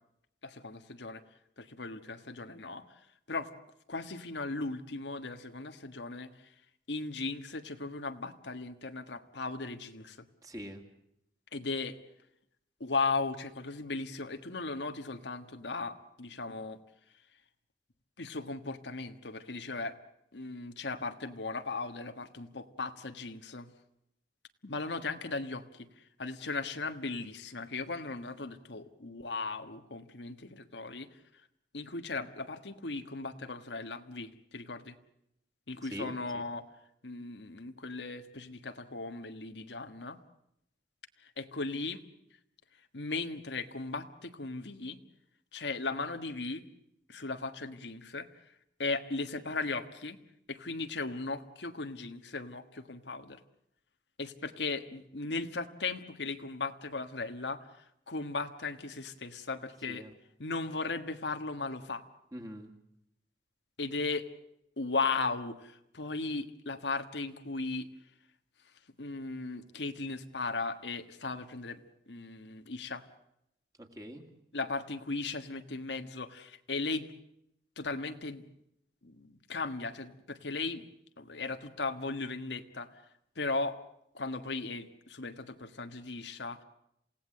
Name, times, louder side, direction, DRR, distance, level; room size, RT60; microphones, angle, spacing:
voice 1, 0.4-1.2 1.6-3.0 3.3-3.5 3.9-6.5 6.9-10.3 11.5-12.0 12.8-16.8 18.2-19.9 20.3-23.7 24.6-31.2 31.7-35.0 35.7-36.6 37.0-40.2 41.2-42.0 42.9-45.0 45.5-46.7 47.1-48.3 48.8-50.2 50.5-53.4 54.2-60.1 60.4-62.0 63.8-64.3 64.8-67.9 69.0-73.0 74.5-77.1 77.8-78.4 79.0-80.8 81.2-83.0 83.3-83.8 84.1-86.6, left 3 dB, 90° left, 8 dB, 1.5 m, -37 dB
voice 2, 10.4-10.8 35.9-36.5 59.9-60.1 62.3-62.7 73.8-74.2, equal, 20° right, 4 dB, 2.3 m, -43 dB
28.0 x 17.5 x 7.7 m, 0.78 s
head